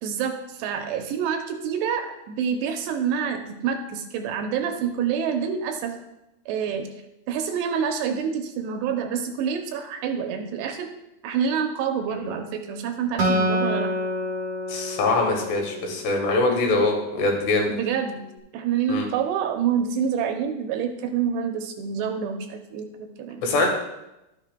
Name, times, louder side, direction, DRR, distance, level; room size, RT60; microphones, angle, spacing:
voice 1, 0.0-5.9 6.5-6.9 7.3-10.9 11.2-13.9 17.7-18.2 18.5-23.4, right 7 dB, 80° right, 5 dB, 2.7 m, -27 dB
Acoustic guitar, 13.2-16.6, equal, 60° right, 1.8 m, -27 dB
voice 2, 14.7-17.7 18.9-19.0 23.4-23.7, left 2 dB, 75° left, 1 dB, 3.5 m, -23 dB
12.5 x 9.2 x 2.2 m, 0.92 s
omnidirectional pair, 5.0 m